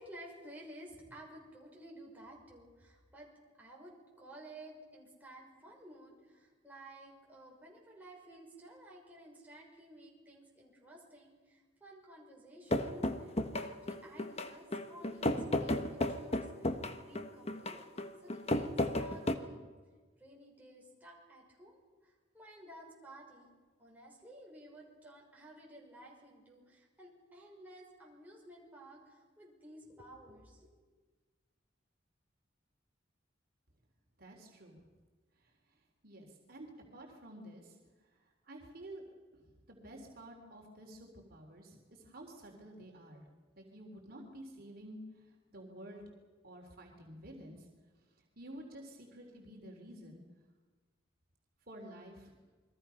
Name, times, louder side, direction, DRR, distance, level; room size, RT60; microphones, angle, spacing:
voice 1, 0.0-3.3 3.6-16.8 17.1-17.8 18.2-18.7 19.0-19.7 20.2-23.5 23.8-30.7, right 1 dB, 10° right, -3 dB, 5.8 m, -54 dB
sound 1, 12.7-19.4, left 1 dB, 35° left, 1.3 m, -34 dB
voice 2, 34.2-34.8 36.0-37.8 38.5-39.0 39.7-43.2 43.5-46.0 46.4-47.7 48.4-50.2 51.7-52.3, right 1 dB, 50° right, 0 dB, 3.6 m, -51 dB
29.0 x 22.5 x 5.8 m, 1.4 s
head